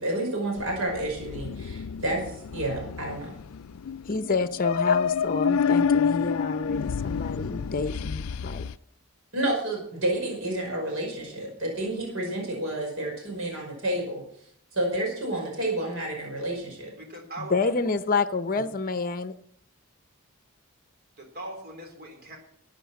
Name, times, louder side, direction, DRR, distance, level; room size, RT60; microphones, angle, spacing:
voice 1, 0.0-3.4 9.3-14.2 14.7-16.9, right 1 dB, 65° right, 5.5 m, -30 dB
sound 1, 0.6-8.7, left 6 dB, 75° left, 0.4 m, -28 dB
voice 2, 4.0-8.7 17.4-19.3, left 4 dB, 40° left, 0.7 m, -28 dB
voice 3, 17.0-17.5 21.2-22.4, right 1 dB, 45° right, 3.7 m, -40 dB
13.0 x 9.0 x 7.5 m
head